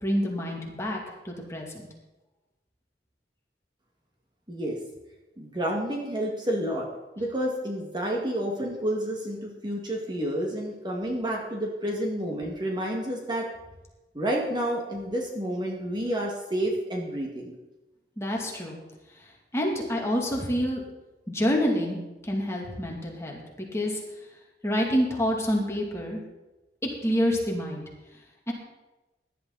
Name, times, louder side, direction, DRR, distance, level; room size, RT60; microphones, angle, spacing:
voice 1, 0.0-1.9 18.2-18.8 19.5-20.8 21.3-22.0 22.2-23.4 23.7-24.0 24.6-26.2 27.0-27.8 28.5-28.6, equal, 15° left, -1 dB, 2.5 m, -27 dB
voice 2, 4.5-4.8 5.4-6.9 7.2-13.5 14.1-17.5, right 1 dB, 25° right, -1 dB, 1.9 m, -30 dB
17.5 x 11.0 x 4.0 m, 1.1 s
head